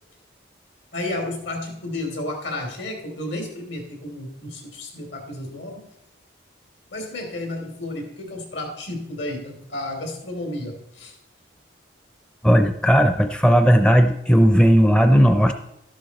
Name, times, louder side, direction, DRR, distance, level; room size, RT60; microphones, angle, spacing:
voice 1, 0.9-5.8 6.9-11.1, left 1 dB, 75° left, 3 dB, 3.1 m, -32 dB
voice 2, 12.4-15.5, equal, 5° left, 7 dB, 0.5 m, -16 dB
12.5 x 11.5 x 4.2 m, 0.83 s
head